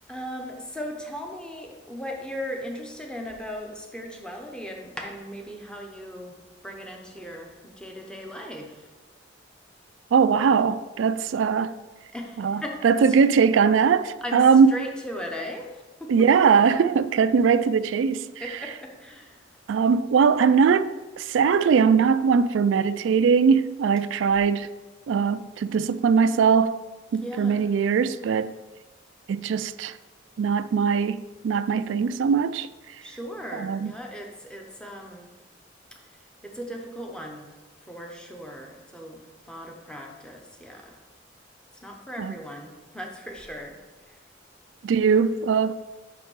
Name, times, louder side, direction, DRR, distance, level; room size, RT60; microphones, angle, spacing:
voice 1, 0.1-8.9 12.1-13.2 14.2-16.1 18.4-19.5 27.2-27.7 33.0-35.3 35.9-37.5 37.8-41.0 41.8-44.2, equal, 5° left, 0.8 m, -38 dB
voice 2, 10.1-11.7 12.4-14.7 16.1-18.3 19.7-24.7 25.1-26.8 27.1-28.5 29.3-29.9 30.4-32.7 33.6-33.9 42.2-42.3 44.8-45.7, right 6 dB, 80° right, 0.3 m, -21 dB
5.8 x 5.5 x 5.5 m
head